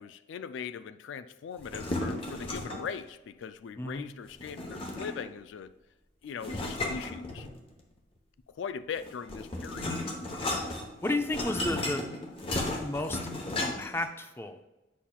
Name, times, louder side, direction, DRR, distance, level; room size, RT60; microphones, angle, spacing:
voice 1, 0.0-5.7 6.2-7.5 8.5-10.0, left 6 dB, 85° left, 12 dB, 0.3 m, -40 dB
sound 1, 1.6-3.0 4.4-5.4 6.4-7.8 9.0-14.0, left 2 dB, 30° left, 0.9 m, -34 dB
voice 2, 3.8-4.1 11.0-12.1 12.8-13.2 13.6-14.6, left 2 dB, 15° left, 8 dB, 0.4 m, -32 dB
8.4 x 5.7 x 2.3 m, 1.0 s
head